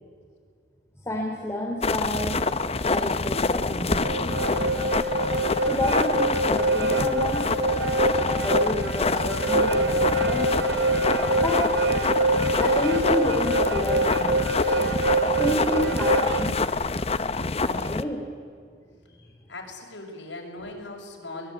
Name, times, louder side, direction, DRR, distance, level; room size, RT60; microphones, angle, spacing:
voice 1, 1.0-2.4 2.9-4.3 5.7-7.6 8.4-10.8 11.3-11.8 12.4-14.5 14.9-16.7 17.5-18.2 19.1-19.3, left 1 dB, 15° left, -1 dB, 3.3 m, -30 dB
sound 1, 1.8-18.0, left 3 dB, 35° left, 0.8 m, -26 dB
sound 2, 3.9-16.5, right 2 dB, 75° right, 2.8 m, -25 dB
voice 2, 19.5-21.5, left 2 dB, 85° left, 1 dB, 6.3 m, -39 dB
23.0 x 21.5 x 9.7 m, 2.2 s
head